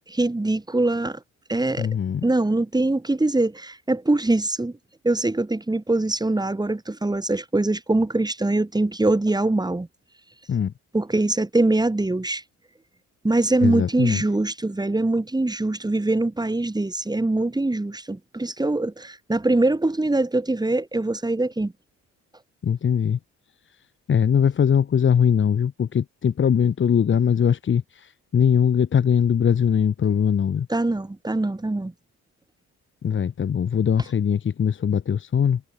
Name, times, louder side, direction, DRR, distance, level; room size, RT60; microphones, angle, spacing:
voice 1, 0.1-1.2 1.5-1.9 2.2-4.7 5.0-9.9 10.9-12.4 13.2-21.7 30.7-31.9, right 2 dB, 15° right, 4.6 m, -23 dB
voice 2, 1.8-2.2 10.5-10.7 13.6-14.2 22.6-23.2 24.1-30.7 33.0-35.6, left 8 dB, 40° left, 1.1 m, -21 dB
cardioid pair, 90°, 30 cm